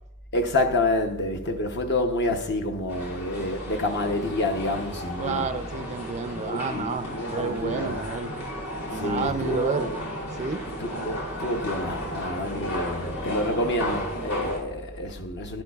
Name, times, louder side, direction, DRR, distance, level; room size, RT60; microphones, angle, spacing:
voice 1, 0.3-5.5 6.4-8.0 9.0-10.0 10.8-15.6, left 1 dB, 50° left, 0.7 m, -28 dB
sound 1, 2.9-14.6, equal, 85° left, 2.5 m, -34 dB
voice 2, 5.2-8.4 8.9-9.9 10.3-10.6, right 4 dB, 30° right, 0.4 m, -30 dB
10.5 x 10.5 x 2.3 m
head